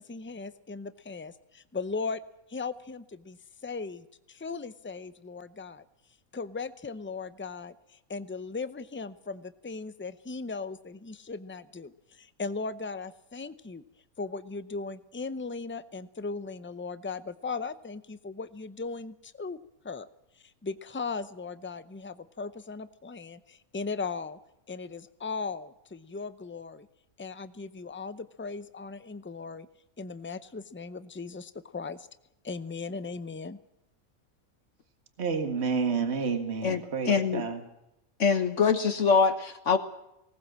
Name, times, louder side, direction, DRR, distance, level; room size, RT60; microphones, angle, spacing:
voice 1, 0.0-2.2 2.5-3.4 3.6-5.8 6.3-13.8 14.2-19.6 19.8-20.1 20.6-24.4 24.7-26.9 27.2-29.7 30.0-32.1 32.4-33.6, left 4 dB, 20° left, 13 dB, 0.3 m, -38 dB
voice 2, 35.2-37.6, right 5 dB, 50° right, 6 dB, 2.1 m, -29 dB
voice 3, 36.6-37.4 38.2-39.8, left 5 dB, 60° left, 8 dB, 1.4 m, -24 dB
19.5 x 18.5 x 7.5 m, 0.85 s
omnidirectional pair, 1.5 m